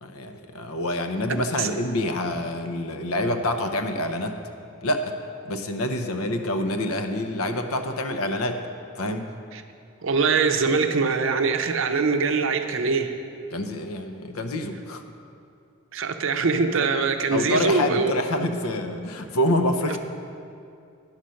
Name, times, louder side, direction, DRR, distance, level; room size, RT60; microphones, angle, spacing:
voice 1, 0.0-4.4 4.8-5.0 5.4-8.6 9.0-9.3 13.5-15.0 17.3-20.0, left 1 dB, 80° left, 6 dB, 0.7 m, -26 dB
voice 2, 10.0-13.1 15.9-18.1, right 4 dB, 60° right, 6 dB, 0.6 m, -23 dB
10.5 x 5.7 x 6.3 m, 2.5 s
head